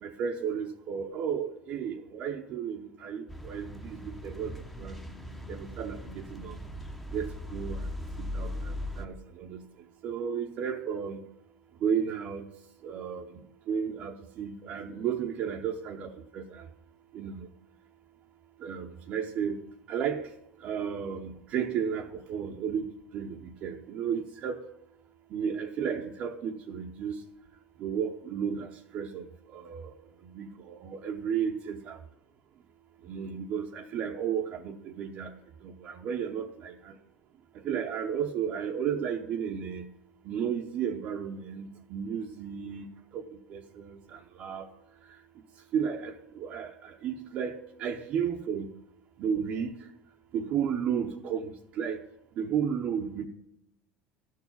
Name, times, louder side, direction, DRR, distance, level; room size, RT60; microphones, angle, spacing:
voice 1, 0.0-5.0 5.5-6.6 7.1-7.9 8.2-9.6 10.0-11.2 11.8-12.5 12.8-13.4 13.7-16.7 17.1-17.5 18.6-19.6 19.9-20.3 20.6-24.6 25.3-27.2 27.8-29.9 30.2-32.0 33.0-35.3 35.6-37.0 37.5-39.9 40.2-42.9 43.1-43.2 43.5-44.7 45.1-45.2 45.7-48.7 49.2-49.9 50.3-52.0 52.4-53.3, right 7 dB, 50° right, 0.8 m, -33 dB
sound 1, 3.3-9.1, left 1 dB, 5° left, 0.9 m, -39 dB
12.5 x 4.7 x 8.2 m
supercardioid pair, 120°, 3 cm